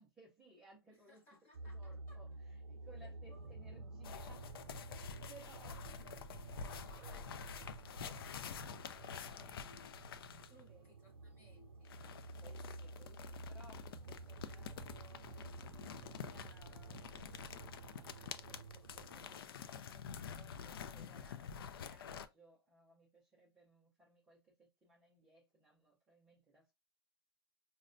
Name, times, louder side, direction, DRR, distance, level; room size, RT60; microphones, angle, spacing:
voice 1, 0.0-1.2 1.6-4.4 4.7-4.8 5.3-6.1 7.0-7.5 10.6-10.9 12.4-26.7, right 2 dB, 5° right, 0.4 m, -63 dB
voice 2, 0.9-2.2 3.0-3.5 4.9-5.3 6.6-10.0 10.5-12.3, left 1 dB, 15° left, 0.8 m, -66 dB
sound 1, 1.5-19.4, right 3 dB, 90° right, 0.4 m, -52 dB
sound 2, 4.0-10.6 11.8-22.3, left 7 dB, 65° left, 0.4 m, -49 dB
5.1 x 2.1 x 2.5 m
hypercardioid pair, 175°, 13 cm